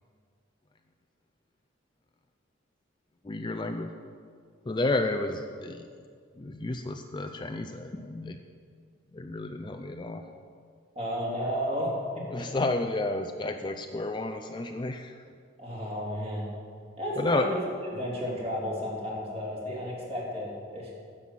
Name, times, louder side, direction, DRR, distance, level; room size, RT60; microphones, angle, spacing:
voice 1, 3.2-3.9 4.7-5.8 6.4-8.4 9.1-10.3 12.3-15.1 17.2-17.5, left 2 dB, 25° left, 6 dB, 0.4 m, -31 dB
voice 2, 10.9-11.9 12.4-12.5 15.6-16.5 17.0-17.6 17.9-20.9, equal, 35° right, -4 dB, 2.8 m, -32 dB
10.0 x 7.7 x 7.5 m, 2.2 s
head